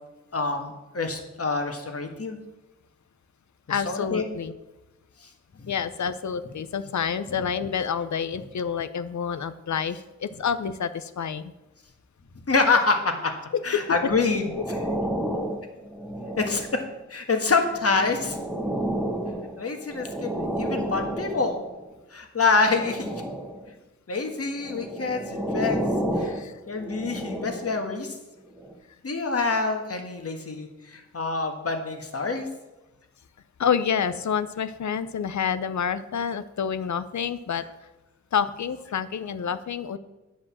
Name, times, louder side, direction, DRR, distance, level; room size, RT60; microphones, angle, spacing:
voice 1, 0.3-2.4 3.8-4.3 5.2-5.3 5.6-5.7 12.5-13.3 13.6-14.5 16.4-16.7 17.1-18.4 19.6-21.6 22.1-23.1 24.1-25.8 26.2-26.3 26.7-28.1 29.0-32.5, left 4 dB, 50° left, 4 dB, 1.6 m, -26 dB
voice 2, 3.7-4.5 5.7-11.5 13.5-13.8 14.6-14.7 26.2-26.6 33.6-37.6 38.3-40.0, left 7 dB, 70° left, 13 dB, 0.7 m, -28 dB
sound 1, 13.9-17.0 17.6-21.8 22.6-23.7 24.5-27.9 28.6-28.7, right 1 dB, 5° right, 1.3 m, -31 dB
9.8 x 5.2 x 7.2 m, 1.0 s
cardioid pair, 65°, 30 cm